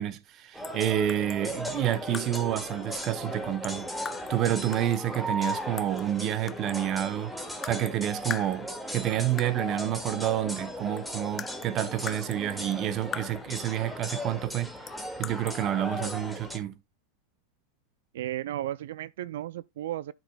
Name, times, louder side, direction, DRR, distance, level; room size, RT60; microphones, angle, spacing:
voice 1, 0.0-3.9 4.3-7.3 7.6-14.9 15.2-16.7, right 11 dB, 40° right, 1.2 m, -29 dB
sound 1, 0.5-16.6, equal, ahead, 1.9 m, -37 dB
sound 2, 0.6-0.8 1.1-2.6 3.6-4.4 4.7-6.1 6.5-7.0 7.6-8.0 8.3-9.0 9.4-9.7 10.6-10.7 11.0-13.6 14.9-15.6, left 7 dB, 25° left, 0.4 m, -41 dB
voice 2, 18.1-20.1, right 13 dB, 80° right, 0.3 m, -34 dB
12.0 x 6.0 x 2.2 m
supercardioid pair, 125°, 0 cm